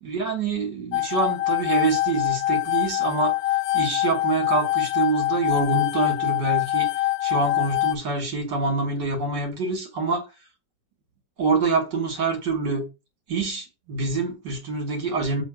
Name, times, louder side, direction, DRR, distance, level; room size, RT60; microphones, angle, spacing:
voice 1, 0.0-3.3 3.7-6.9 7.2-10.3 11.4-12.9 13.3-15.4, right 3 dB, 70° right, 2.6 m, -26 dB
sound 1, 0.9-7.9, left 16 dB, 70° left, 0.9 m, -24 dB
7.2 x 2.8 x 5.9 m
omnidirectional pair, 1.9 m